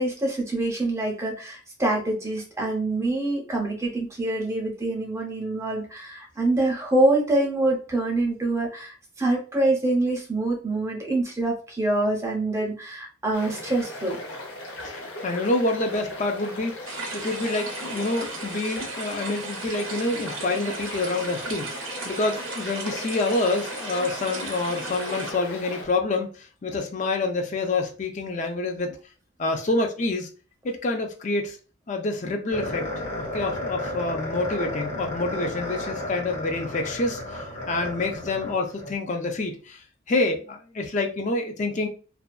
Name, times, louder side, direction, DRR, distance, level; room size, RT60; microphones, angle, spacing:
voice 1, 0.0-14.2, right 2 dB, 15° right, 0.6 m, -25 dB
sound 1, 13.3-25.8, left 1 dB, 90° left, 0.8 m, -38 dB
voice 2, 14.8-16.7 17.1-21.7 22.1-29.0 29.4-30.3 30.6-31.6 31.9-32.9 33.2-39.8 40.1-41.9, left 2 dB, 35° left, 0.4 m, -27 dB
sound 2, 16.9-25.3, right 3 dB, 85° right, 0.6 m, -36 dB
sound 3, 32.5-38.9, left 1 dB, 70° left, 1.1 m, -33 dB
2.5 x 2.2 x 2.2 m
head